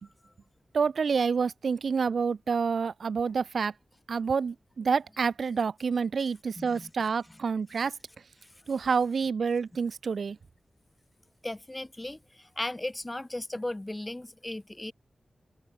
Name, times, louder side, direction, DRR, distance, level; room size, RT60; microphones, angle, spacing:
voice 1, 0.7-3.7 4.1-7.9 8.7-10.4, right 5 dB, 75° right, 0.5 m, -28 dB
voice 2, 6.6-6.9 11.4-14.9, left 1 dB, 20° left, 0.8 m, -36 dB
cardioid pair, 65°, 0 cm